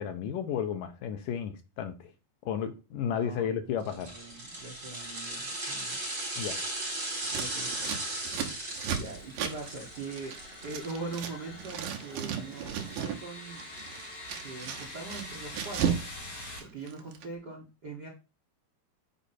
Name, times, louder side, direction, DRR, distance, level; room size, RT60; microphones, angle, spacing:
voice 1, 0.0-2.1 2.4-4.1 6.4-6.6, left 8 dB, 75° left, 8 dB, 2.3 m, -33 dB
voice 2, 3.0-6.0 7.3-10.3 10.6-13.6 14.4-15.9 16.2-18.1, right 3 dB, 50° right, 0 dB, 1.2 m, -42 dB
sound 1, 3.8-11.2 11.5-11.6, right 2 dB, 30° right, 4.6 m, -37 dB
Scissors, 7.2-11.3 11.6-13.2 13.5-16.1 16.3-17.2, right 8 dB, 70° right, 2.5 m, -35 dB
sound 2, 8.6-16.6, left 2 dB, 55° left, 5.7 m, -45 dB
8.3 x 5.1 x 4.3 m, 0.31 s
omnidirectional pair, 4.2 m